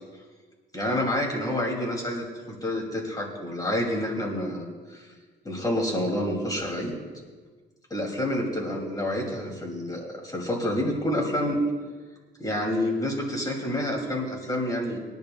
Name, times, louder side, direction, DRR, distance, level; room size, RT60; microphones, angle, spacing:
voice 1, 0.7-5.1 5.4-6.9 7.9-11.6 12.4-15.0, left 1 dB, 20° left, -1 dB, 2.9 m, -28 dB
22.5 x 10.5 x 2.4 m, 1.4 s
cardioid pair, 90°, 20 cm